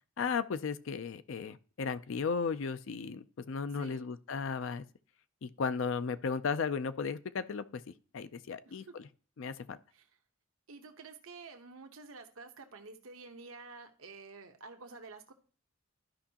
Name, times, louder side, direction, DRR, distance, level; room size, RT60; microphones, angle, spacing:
voice 1, 0.2-4.8 5.4-9.1 9.4-9.8, left 5 dB, 65° left, 0.4 m, -35 dB
voice 2, 3.7-4.1 8.6-8.9 9.9-10.1 10.7-15.3, right 4 dB, 80° right, 1.0 m, -50 dB
12.5 x 5.4 x 2.8 m
head